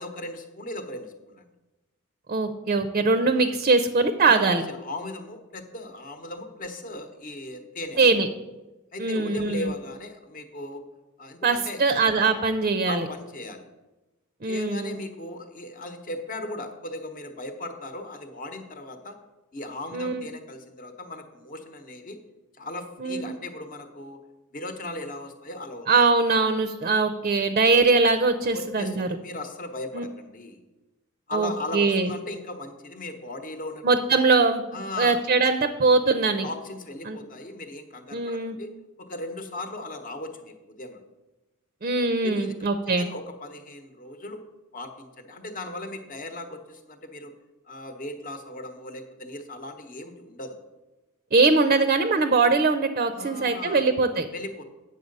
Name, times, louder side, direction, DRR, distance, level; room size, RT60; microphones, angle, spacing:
voice 1, 0.0-1.5 4.2-8.1 8.9-10.8 11.2-11.8 12.9-13.7 14.4-19.2 19.5-22.2 22.6-24.2 24.5-25.9 28.5-30.6 31.3-33.8 34.7-35.2 36.4-41.0 42.2-42.6 42.8-44.4 44.7-47.3 47.7-50.6 53.1-53.9 54.3-54.6, left 2 dB, 40° left, 7 dB, 1.0 m, -37 dB
voice 2, 2.3-4.6 8.0-8.3 9.0-9.7 11.4-13.1 14.4-15.0 19.9-20.3 23.0-23.2 25.9-29.1 29.9-30.1 31.3-32.1 33.8-34.6 35.0-36.5 37.0-37.2 38.1-38.6 41.8-43.1 51.3-54.3, right 3 dB, 40° right, 9 dB, 0.5 m, -22 dB
8.8 x 6.6 x 5.3 m, 1.1 s
head